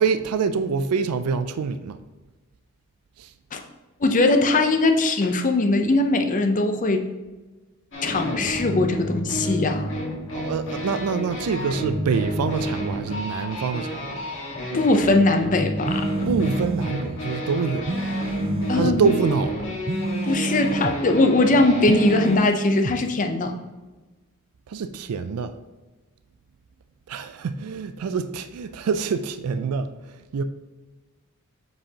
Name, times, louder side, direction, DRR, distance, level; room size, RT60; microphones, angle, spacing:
voice 1, 0.0-2.0 3.2-3.3 10.3-14.1 16.3-17.9 18.7-19.7 24.7-25.5 27.1-30.4, right 5 dB, 90° right, 0.4 m, -26 dB
voice 2, 4.0-7.1 8.0-9.9 14.7-16.1 18.7-19.1 20.2-23.6, left 2 dB, 35° left, 0.5 m, -20 dB
sound 1, 7.9-22.4, equal, 60° left, 1.6 m, -30 dB
sound 2, 15.9-16.9 17.9-18.9 19.9-20.9 21.9-23.0, right 2 dB, 25° right, 0.4 m, -28 dB
7.5 x 4.7 x 2.8 m
head